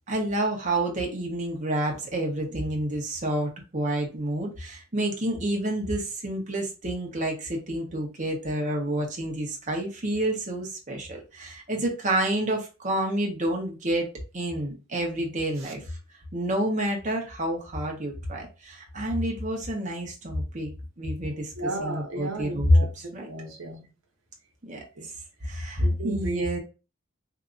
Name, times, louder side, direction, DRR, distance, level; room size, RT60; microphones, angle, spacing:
voice 1, 0.1-14.1 14.3-16.0 16.3-20.7 21.0-23.3 24.6-24.8 25.4-26.6, right 1 dB, 40° right, 1.0 m, -28 dB
voice 2, 21.6-23.9 25.0-25.1 25.8-26.4, right 2 dB, 75° right, 1.0 m, -34 dB
3.8 x 2.8 x 2.4 m
head